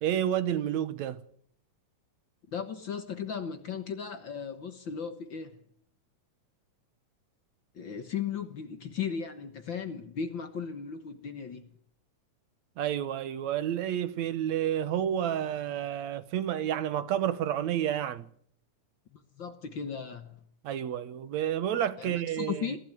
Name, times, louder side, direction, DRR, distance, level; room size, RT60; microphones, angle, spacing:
voice 1, 0.0-1.2 12.8-18.3 20.6-22.7, right 10 dB, 75° right, 2.3 m, -30 dB
voice 2, 2.5-5.6 7.8-11.7 19.1-20.4 22.0-22.8, left 7 dB, 50° left, 1.7 m, -36 dB
21.0 x 15.5 x 9.4 m
omnidirectional pair, 3.3 m